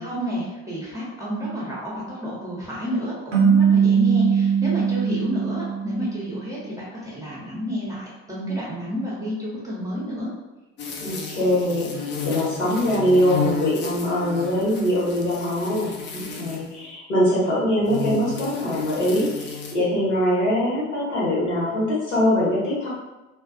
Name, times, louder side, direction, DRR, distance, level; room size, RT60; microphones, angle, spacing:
voice 1, 0.0-10.3, equal, 10° right, -6 dB, 0.7 m, -30 dB
sound 1, 3.3-6.5, right 7 dB, 80° right, 0.6 m, -20 dB
sound 2, 10.8-16.8 17.8-19.7, left 5 dB, 30° left, 0.4 m, -32 dB
voice 2, 11.0-11.9 12.2-22.9, left 1 dB, 75° left, -7 dB, 1.0 m, -22 dB
2.3 x 2.2 x 2.4 m, 1.1 s
figure-of-eight pair, 55°, 36 cm